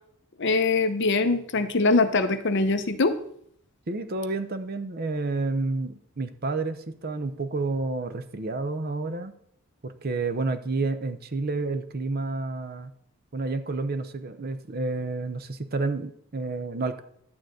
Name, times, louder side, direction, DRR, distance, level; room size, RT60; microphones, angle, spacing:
voice 1, 0.4-3.2, left 3 dB, 55° left, 9 dB, 0.8 m, -23 dB
voice 2, 3.9-9.3 9.8-12.9 13.3-17.0, right 3 dB, 45° right, 10 dB, 0.7 m, -30 dB
11.5 x 3.9 x 7.7 m, 0.69 s
head